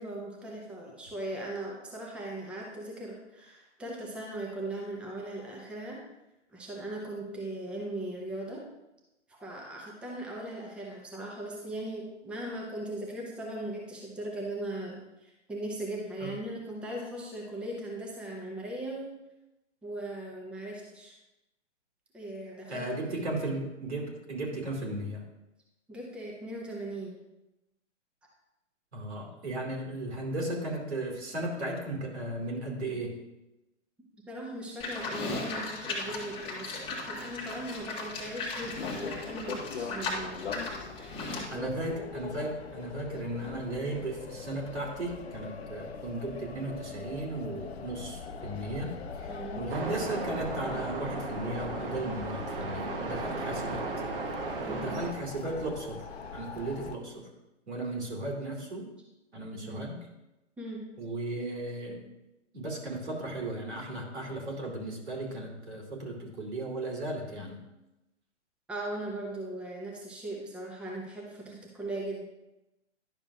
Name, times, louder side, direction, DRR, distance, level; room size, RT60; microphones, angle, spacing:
voice 1, 0.0-6.0 6.5-8.6 9.3-19.1 19.8-21.1 22.1-22.8 25.9-27.2 34.3-40.6 40.9-41.8 49.3-49.7 54.6-55.0 59.6-59.9 60.6-60.8 68.7-72.2, right 1 dB, 5° right, -2 dB, 0.8 m, -39 dB
voice 2, 22.7-25.2 28.9-33.1 41.5-48.9 49.2-53.8 54.5-57.3 57.7-58.9 59.3-60.0 61.0-62.0 62.5-67.6, right 1 dB, 65° right, -1 dB, 2.5 m, -36 dB
Livestock farm animals working animals, 34.8-41.5, left 3 dB, 15° left, 1.3 m, -37 dB
sound 1, 38.6-57.0, left 5 dB, 60° left, 0.7 m, -42 dB
sound 2, 49.7-55.1, right 4 dB, 50° right, 1.0 m, -36 dB
11.0 x 6.5 x 2.4 m, 0.95 s
figure-of-eight pair, 120°, 36 cm